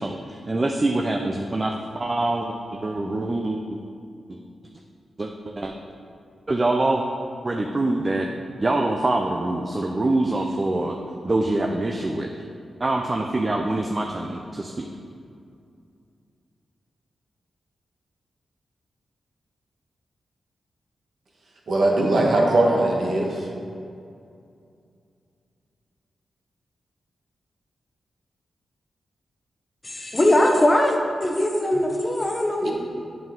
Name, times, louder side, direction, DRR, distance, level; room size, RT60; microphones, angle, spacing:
voice 1, 0.0-3.8 4.3-4.4 5.2-5.7 6.5-7.0 7.4-8.3 8.6-11.0 11.2-12.3 12.8-14.9, right 2 dB, 35° right, 2 dB, 0.5 m, -25 dB
voice 2, 21.7-23.5 32.6-32.7, right 1 dB, 65° right, -2 dB, 1.3 m, -20 dB
voice 3, 29.8-32.7, left 1 dB, 25° left, 2 dB, 0.9 m, -21 dB
7.8 x 5.5 x 3.7 m, 2.4 s
cardioid pair, 65°, 0 cm